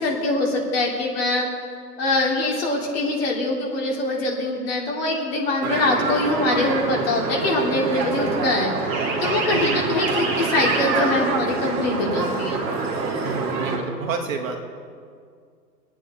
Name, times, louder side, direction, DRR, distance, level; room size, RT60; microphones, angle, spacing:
voice 1, 0.0-1.5 2.0-12.6, left 2 dB, 35° left, -2 dB, 2.7 m, -23 dB
sound 1, 5.6-13.8, right 3 dB, 20° right, 1.8 m, -25 dB
voice 2, 9.5-10.0 13.2-14.6, right 5 dB, 50° right, 2 dB, 2.0 m, -29 dB
23.0 x 9.1 x 4.2 m, 2.1 s
hypercardioid pair, 155°, 49 cm